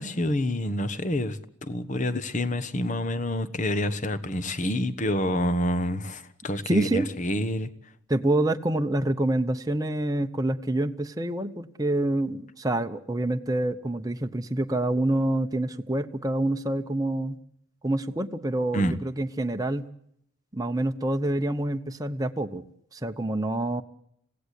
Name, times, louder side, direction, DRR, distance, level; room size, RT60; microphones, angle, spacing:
voice 1, 0.0-7.7 18.7-19.0, left 1 dB, 35° left, 13 dB, 1.2 m, -28 dB
voice 2, 6.6-7.1 8.1-17.4 17.8-19.9 20.5-22.6 22.9-23.8, right 1 dB, 15° right, 5 dB, 0.9 m, -27 dB
27.0 x 16.5 x 8.3 m, 0.73 s
head